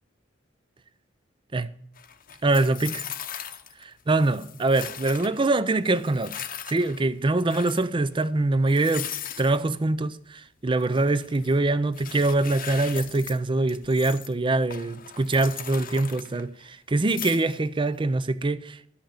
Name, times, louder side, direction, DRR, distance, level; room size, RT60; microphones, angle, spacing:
sound 1, 2.0-3.8 4.1-5.4 5.8-7.1 7.4-7.9 8.2-8.3 8.7-9.6 10.8-11.6 11.9-13.4 13.7-14.3 14.7-16.7 17.0-17.8, left 9 dB, 50° left, 0.8 m, -39 dB
voice 1, 2.4-3.0 3.8-6.4 6.7-9.1 9.4-18.8, right 2 dB, 25° right, 0.5 m, -24 dB
13.5 x 5.8 x 8.6 m
head